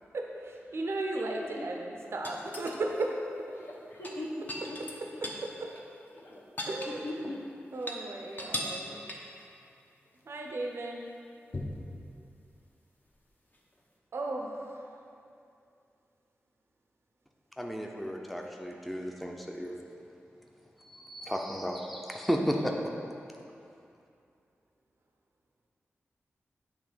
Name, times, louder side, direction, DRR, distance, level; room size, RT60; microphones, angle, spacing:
voice 1, 0.1-3.1 5.2-5.7 6.7-7.1 7.7-9.0 10.3-11.1 14.1-14.5, right 2 dB, 60° right, 1 dB, 0.6 m, -35 dB
voice 2, 0.8-1.7 3.5-4.8 6.1-7.4 8.9-9.0, left 1 dB, 60° left, -2 dB, 1.1 m, -41 dB
sound 1, 2.2-3.1 3.9-5.5 5.8-5.9 6.2-7.4 7.7-8.0 8.4-8.8 9.1-9.4 11.5-11.9 13.5-13.6, left 1 dB, 40° left, 0.8 m, -38 dB
voice 3, 17.6-19.8 21.0-22.7, equal, ahead, 0 dB, 0.6 m, -33 dB
7.1 x 3.2 x 5.0 m, 2.6 s
cardioid pair, 55°, 5 cm